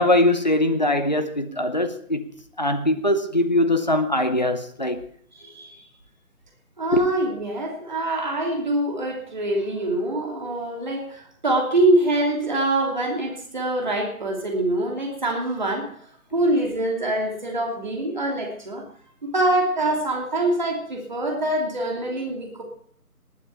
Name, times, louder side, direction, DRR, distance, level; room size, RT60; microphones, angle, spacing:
voice 1, 0.0-2.3 2.6-5.0 6.9-7.0, left 1 dB, 30° left, 0.9 m, -21 dB
voice 2, 5.3-5.8 6.8-15.9 16.3-18.8 19.2-22.6, right 1 dB, 30° right, 2.8 m, -24 dB
19.5 x 11.5 x 4.4 m
figure-of-eight pair, 165°, 45 cm